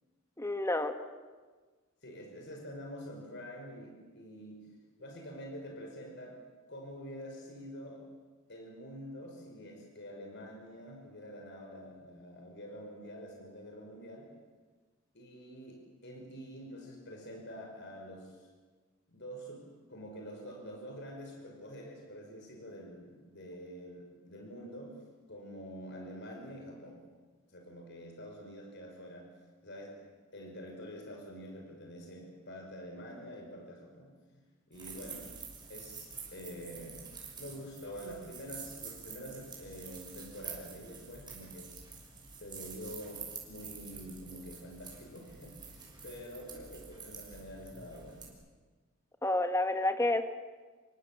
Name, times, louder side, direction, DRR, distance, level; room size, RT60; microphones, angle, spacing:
voice 1, 0.4-0.9 49.2-50.3, left 2 dB, 15° left, 7 dB, 1.7 m, -29 dB
voice 2, 2.0-4.6 5.0-6.4 6.7-8.0 8.5-14.3 15.1-18.5 19.1-19.6 19.9-24.9 25.3-27.0 27.5-29.3 29.6-30.0 30.3-34.1 34.7-35.3 35.7-37.1 37.4-41.7 42.3-48.3, equal, 55° left, 2 dB, 5.4 m, -46 dB
sound 1, 34.7-48.3, right 5 dB, 20° right, 6.5 m, -48 dB
29.0 x 24.0 x 7.5 m, 1.4 s
head